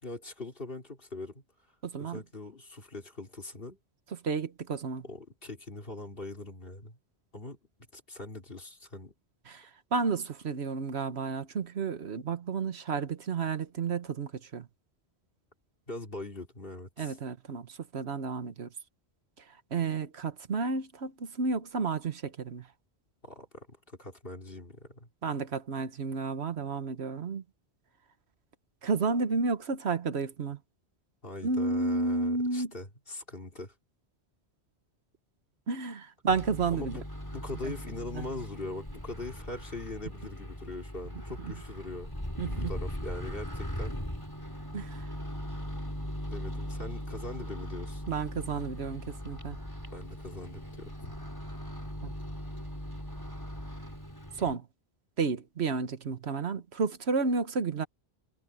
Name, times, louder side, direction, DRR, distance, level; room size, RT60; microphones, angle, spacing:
voice 1, 0.0-1.4 2.0-3.8 5.0-7.0 7.3-7.6 7.9-9.1 15.9-17.2 23.2-25.1 31.2-33.7 36.7-37.0 37.3-42.1 42.4-44.0 46.2-48.0 49.9-51.1, left 2 dB, 60° left, 3.3 m, -42 dB
voice 2, 1.8-2.2 4.1-5.0 9.5-14.7 17.0-18.7 19.7-22.7 25.2-27.4 28.8-30.6 31.4-32.7 35.7-37.0 37.6-37.7 38.1-38.2 41.4-41.5 42.4-42.7 44.7-45.1 48.1-49.6 52.0-52.1 54.4-54.7 55.2-57.9, right 4 dB, 75° right, 1.4 m, -31 dB
Microwave oven, 36.3-54.5, equal, 20° left, 4.3 m, -39 dB
omnidirectional pair, 1.1 m